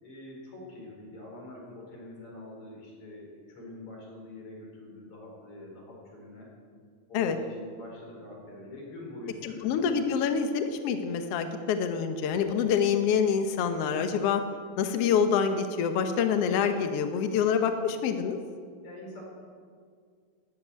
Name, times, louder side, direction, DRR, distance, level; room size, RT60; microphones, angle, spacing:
voice 1, 0.0-6.5 7.1-9.7 18.8-19.2, left 2 dB, 40° left, -2 dB, 5.1 m, -45 dB
voice 2, 9.4-14.4 14.8-18.4, left 7 dB, 90° left, 7 dB, 1.3 m, -26 dB
13.5 x 10.5 x 9.3 m, 2.1 s
omnidirectional pair, 4.2 m